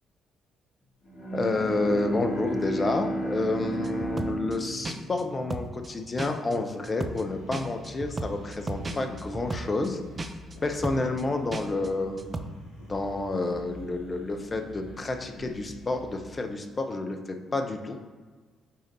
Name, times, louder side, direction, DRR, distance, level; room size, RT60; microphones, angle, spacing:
Bowed string instrument, 1.1-6.4, right 1 dB, 50° left, 1.4 m, -33 dB
voice 1, 1.3-10.0 10.6-12.4 12.9-18.0, left 2 dB, 35° left, 5 dB, 0.8 m, -29 dB
sound 1, 3.8-4.6 4.8-5.2 5.5-5.9 6.2-6.6 6.8-7.2 7.5-9.9 10.2-10.6 10.8-11.2 11.5-11.9 12.2-12.4, right 2 dB, 35° right, 0.5 m, -35 dB
sound 2, 7.2-16.2, left 1 dB, 75° left, 1.6 m, -46 dB
5.7 x 4.3 x 4.0 m, 1.4 s
figure-of-eight pair, 45°, 0 cm